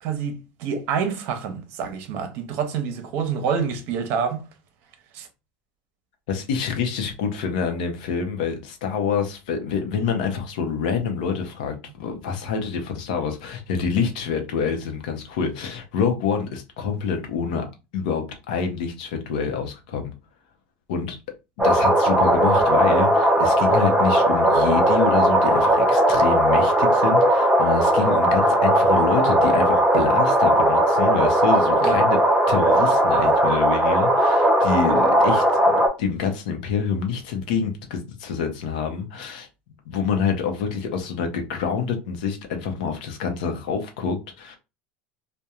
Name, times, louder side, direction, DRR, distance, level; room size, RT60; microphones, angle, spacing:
voice 1, 0.0-4.4 5.1-5.3 31.8-32.0, right 6 dB, 55° right, 0.7 m, -27 dB
voice 2, 6.3-17.6 17.9-20.1 20.9-21.2 21.6-32.2 32.5-39.5 39.9-44.6, left 6 dB, 85° left, 0.6 m, -27 dB
sound 1, 21.6-35.9, right 1 dB, 10° right, 0.6 m, -18 dB
2.9 x 2.1 x 2.3 m
supercardioid pair, 140°, 4 cm